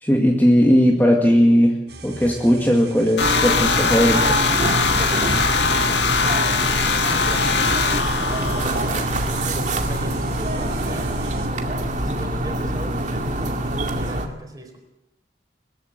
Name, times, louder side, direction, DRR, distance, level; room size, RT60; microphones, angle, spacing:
voice 1, 0.0-1.7 2.0-4.4, equal, 10° left, 0 dB, 2.1 m, -17 dB
sound 1, 1.9-11.5, right 3 dB, 75° right, 4.3 m, -40 dB
sound 2, 3.2-9.3, left 5 dB, 80° left, 1.9 m, -22 dB
sound 3, 3.2-14.3, right 1 dB, 45° right, 2.2 m, -25 dB
voice 2, 4.9-14.8, equal, 20° right, 4 dB, 4.2 m, -38 dB
21.5 x 15.0 x 9.2 m, 0.88 s
head